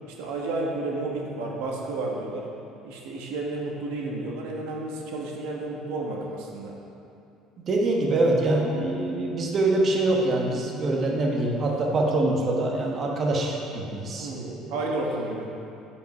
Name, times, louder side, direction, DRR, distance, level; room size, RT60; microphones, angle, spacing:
voice 1, 0.1-2.5 2.8-6.7 14.2-15.5, right 2 dB, 85° right, -1 dB, 1.2 m, -31 dB
voice 2, 7.7-14.7, right 2 dB, 35° right, -1 dB, 1.1 m, -24 dB
8.7 x 5.2 x 5.4 m, 2.6 s
cardioid pair, 130°, 0 cm